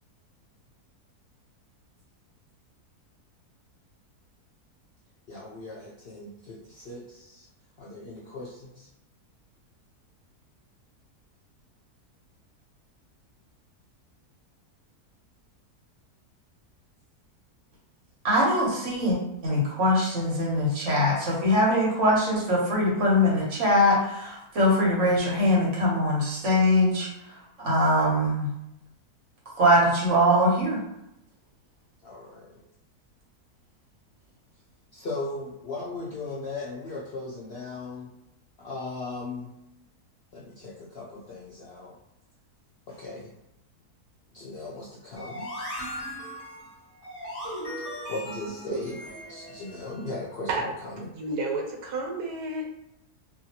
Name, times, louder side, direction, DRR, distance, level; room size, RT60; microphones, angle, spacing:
voice 1, 5.3-7.4 7.8-8.9 32.0-32.6 34.9-38.1 38.6-39.5 40.3-41.9 43.0-43.3 44.3-45.5 48.1-48.9 49.3-51.1, left 2 dB, 65° left, -6 dB, 0.6 m, -37 dB
voice 2, 18.2-19.2 19.4-27.1 27.6-28.5 29.6-30.8, left 1 dB, 55° right, -4 dB, 1.1 m, -22 dB
sound 1, 45.1-50.1, equal, 15° left, 1.4 m, -38 dB
voice 3, 51.1-52.6, right 3 dB, 85° right, 1 dB, 1.2 m, -30 dB
2.8 x 2.7 x 2.8 m, 0.87 s
omnidirectional pair, 1.7 m